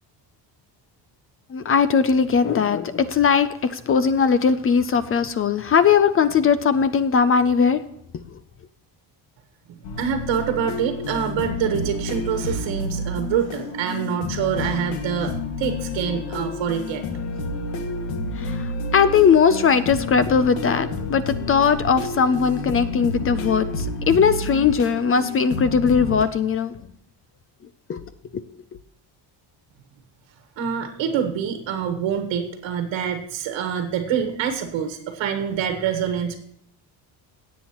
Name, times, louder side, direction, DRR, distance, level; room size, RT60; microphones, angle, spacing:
voice 1, 1.5-7.8 18.3-26.7 27.9-28.0, left 6 dB, 30° left, 13 dB, 0.4 m, -19 dB
voice 2, 9.7-17.0 30.6-36.4, right 8 dB, 80° right, 5 dB, 1.5 m, -26 dB
sound 1, 9.8-26.2, left 3 dB, 75° left, 1.7 m, -30 dB
17.5 x 8.3 x 3.0 m, 0.75 s
cardioid pair, 175°, 46 cm